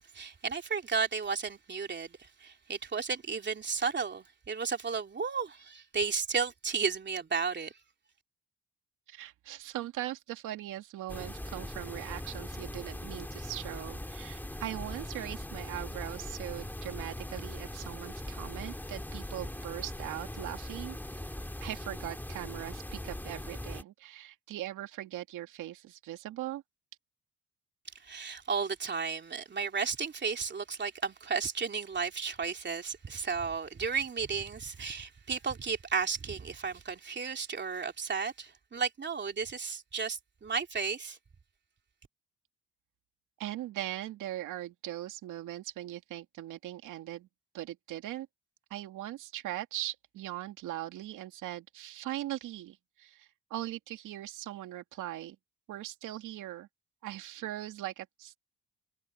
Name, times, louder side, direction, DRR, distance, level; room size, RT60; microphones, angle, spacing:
voice 1, 0.1-7.7 28.0-41.2, right 5 dB, 35° right, 3.1 m, -33 dB
voice 2, 9.1-21.0 21.6-26.6 43.4-47.3 47.5-48.3 48.7-55.4 55.7-56.7 57.0-58.4, right 14 dB, 90° right, 2.6 m, -40 dB
sound 1, 11.1-23.8, left 1 dB, 5° left, 2.6 m, -40 dB
cardioid pair, 90°, 30 cm